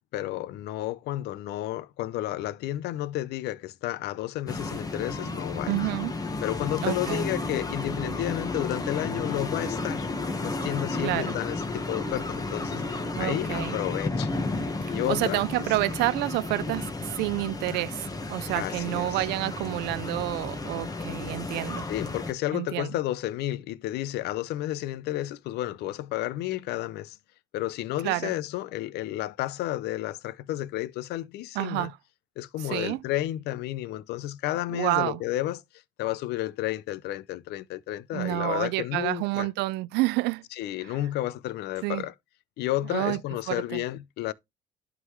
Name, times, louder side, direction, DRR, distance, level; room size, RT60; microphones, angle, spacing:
voice 1, 0.1-5.8 6.4-10.1 10.4-14.3 14.9-15.4 18.5-19.2 21.9-27.2 27.5-31.9 32.4-35.6 36.0-39.5 40.6-42.1 42.6-44.3, left 14 dB, 75° left, 0.5 m, -31 dB
sound 1, 4.5-22.3, left 3 dB, 20° left, 1.2 m, -32 dB
voice 2, 5.7-6.1 6.8-7.3 11.0-11.4 13.2-13.8 14.8-21.9 22.5-22.9 28.0-28.4 31.6-32.0 32.6-33.0 34.7-35.2 38.1-40.4 40.8-41.0 41.8-42.1 42.9-43.2 43.5-43.8, right 19 dB, 90° right, 0.4 m, -29 dB
11.0 x 3.8 x 3.1 m
cardioid pair, 110°, 17 cm